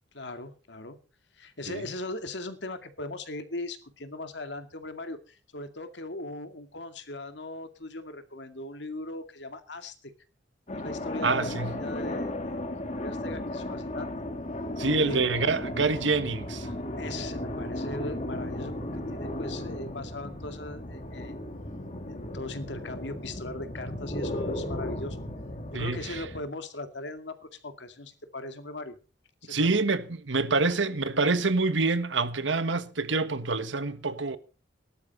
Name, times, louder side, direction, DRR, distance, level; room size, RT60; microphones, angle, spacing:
voice 1, 0.1-1.0 1.3-10.1 10.7-14.1 15.0-15.2 17.0-18.7 19.1-21.3 22.1-25.2 25.7-29.0 29.4-29.8, left 2 dB, 65° left, 2.2 m, -39 dB
sound 1, 10.7-26.4, left 1 dB, 40° left, 2.1 m, -35 dB
voice 2, 11.2-11.8 14.8-16.7 25.7-26.2 29.5-34.4, right 3 dB, 85° right, 1.5 m, -26 dB
18.0 x 12.0 x 4.2 m
head